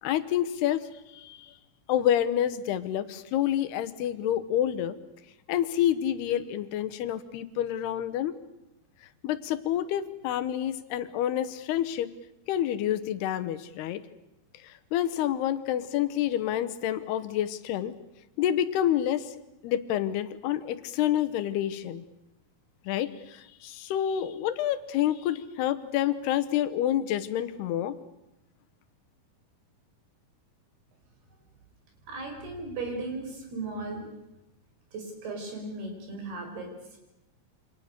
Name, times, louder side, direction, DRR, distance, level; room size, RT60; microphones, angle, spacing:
voice 1, 0.0-1.5 1.9-5.0 5.5-8.4 9.2-12.1 12.5-14.0 14.6-18.0 18.4-19.3 19.6-22.0 22.9-28.0, left 11 dB, 85° left, 12 dB, 3.2 m, -28 dB
voice 2, 32.1-34.0 34.9-37.0, right 3 dB, 80° right, 3 dB, 7.4 m, -36 dB
28.0 x 26.0 x 6.7 m, 0.90 s
omnidirectional pair, 4.5 m